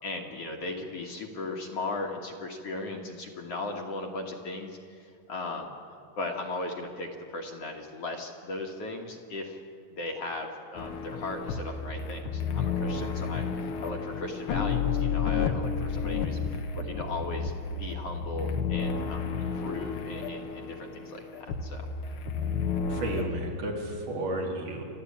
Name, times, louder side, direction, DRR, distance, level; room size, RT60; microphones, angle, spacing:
voice 1, 0.0-5.8 6.2-9.6 9.9-17.5 17.8-21.9, left 2 dB, 50° left, 2 dB, 2.2 m, -37 dB
sound 1, 10.8-23.3, left 6 dB, 70° left, 1.3 m, -31 dB
voice 2, 22.9-24.8, right 1 dB, 65° right, 0 dB, 4.0 m, -32 dB
29.0 x 11.5 x 8.5 m, 2.3 s
omnidirectional pair, 4.0 m